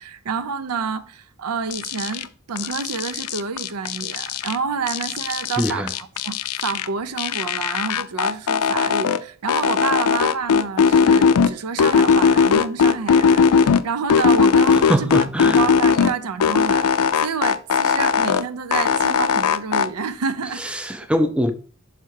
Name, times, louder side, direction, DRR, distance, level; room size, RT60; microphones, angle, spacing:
voice 1, 0.0-15.1 15.4-20.6, right 5 dB, 90° right, 0.5 m, -28 dB
sound 1, 1.7-2.2 2.6-4.6 4.9-6.9 7.2-9.2 9.5-11.5 11.8-13.8 14.1-16.1 16.4-18.4 18.7-19.9, left 6 dB, 85° left, 0.4 m, -18 dB
voice 2, 5.6-5.9 14.9-15.6 20.7-21.5, equal, 5° right, 0.5 m, -22 dB
5.7 x 4.6 x 4.7 m
head